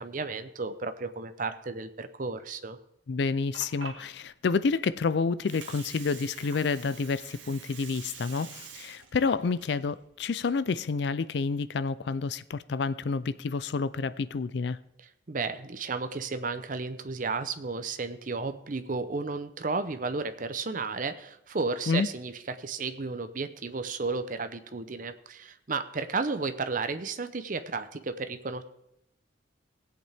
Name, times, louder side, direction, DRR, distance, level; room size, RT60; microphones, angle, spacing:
voice 1, 0.0-2.8 15.3-28.6, right 4 dB, 45° right, 0.7 m, -33 dB
voice 2, 3.1-14.8 21.9-22.1, left 4 dB, 60° left, 0.4 m, -29 dB
Water, 3.5-11.1, right 6 dB, 80° right, 1.5 m, -48 dB
18.0 x 8.1 x 3.5 m
head